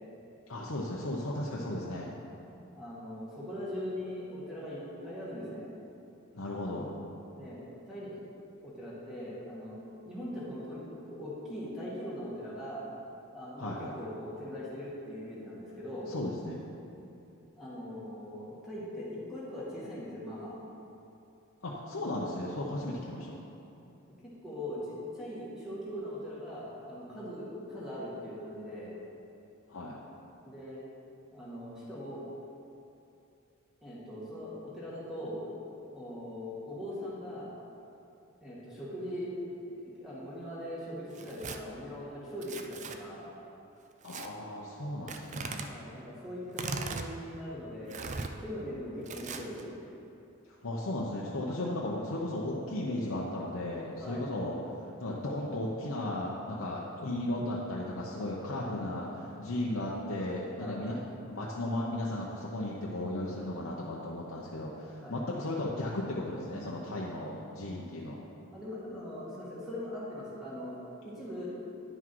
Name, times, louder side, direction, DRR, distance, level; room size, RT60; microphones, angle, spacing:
voice 1, 0.5-2.1 6.3-6.9 13.6-13.9 16.1-16.6 21.6-23.4 29.7-30.0 44.0-45.7 50.6-54.6 55.0-59.1 59.4-61.0 61.3-68.2, left 1 dB, 75° left, -4 dB, 0.8 m, -35 dB
voice 2, 2.7-5.7 7.3-8.1 8.6-9.8 10.0-12.9 13.3-16.1 17.6-20.5 24.4-24.8 25.1-28.9 30.4-30.8 31.3-32.2 33.8-35.4 35.9-37.5 38.4-39.3 39.6-43.3 45.7-48.0 48.4-49.7 54.0-54.2 58.8-59.1 60.6-60.8 65.0-65.2 66.6-66.7 68.5-70.7 71.0-71.5, left 1 dB, ahead, -9 dB, 2.0 m, -41 dB
Tearing, 41.1-41.6 42.4-43.0 44.0-44.3 45.1-45.7 46.5-47.1 47.9-48.3 49.1-49.6, right 4 dB, 35° right, 0.4 m, -38 dB
10.0 x 6.0 x 4.6 m, 2.8 s
head